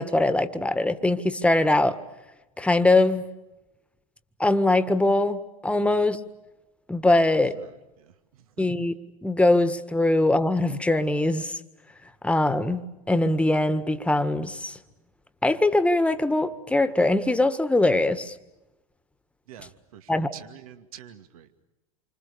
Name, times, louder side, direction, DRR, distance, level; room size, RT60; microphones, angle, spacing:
voice 1, 0.0-2.0 2.6-3.2 4.4-6.2 6.9-7.5 8.6-8.9 9.2-11.6 12.2-14.8 15.4-18.3 20.1-20.3, left 2 dB, 5° left, 11 dB, 1.7 m, -22 dB
voice 2, 7.3-8.7 19.5-21.6, right 10 dB, 70° right, 9 dB, 2.3 m, -48 dB
28.0 x 25.5 x 6.9 m, 1.0 s
hypercardioid pair, 90°, 19 cm